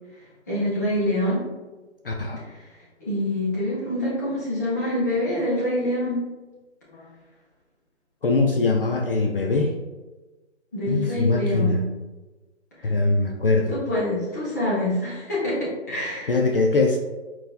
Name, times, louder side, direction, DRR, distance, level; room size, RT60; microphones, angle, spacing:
voice 1, 0.5-1.4 3.0-6.2 10.7-11.8 13.7-16.3, left 1 dB, 15° left, -8 dB, 0.7 m, -25 dB
voice 2, 2.0-2.4 6.9-7.1 8.2-9.8 10.9-11.8 12.8-13.7 16.3-17.0, left 3 dB, 50° left, 2 dB, 0.4 m, -22 dB
4.2 x 4.1 x 2.2 m, 1.2 s
figure-of-eight pair, 155°, 35 cm